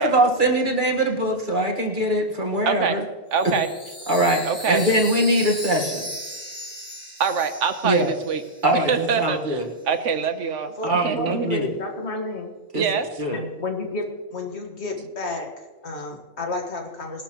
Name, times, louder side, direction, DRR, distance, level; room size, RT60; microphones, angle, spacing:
voice 1, 0.0-3.0 4.1-6.1 7.8-8.1 8.6-9.7 10.8-11.7 12.7-12.9 13.2-13.4, right 1 dB, 40° right, 1 dB, 1.7 m, -22 dB
voice 2, 2.6-3.0 3.3-3.7 4.4-4.8 7.2-8.4 8.9-11.5 12.7-13.1, right 6 dB, 75° right, 8 dB, 1.3 m, -25 dB
Chime, 3.3-8.9, equal, 30° left, 5.6 m, -36 dB
voice 3, 10.8-12.5 13.3-17.2, left 2 dB, 60° left, 2 dB, 2.0 m, -31 dB
20.5 x 12.0 x 3.0 m, 1.3 s
omnidirectional pair, 1.3 m